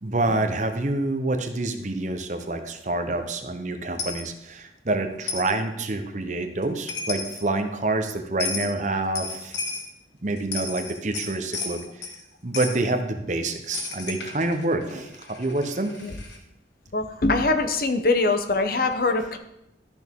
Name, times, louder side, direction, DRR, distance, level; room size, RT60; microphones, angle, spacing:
voice 1, 0.0-9.6 10.2-11.8 12.4-15.9, right 2 dB, 40° right, 7 dB, 0.8 m, -27 dB
Coin (dropping), 4.0-4.2 5.3-5.5 6.6-6.7 6.9-7.4 8.4-8.7 9.2-9.9 10.4-12.2 12.5-12.8 13.7-16.4, left 4 dB, 80° left, 1.3 m, -33 dB
voice 2, 16.9-19.4, left 3 dB, 50° left, 7 dB, 0.8 m, -23 dB
13.0 x 6.2 x 3.6 m, 0.85 s
head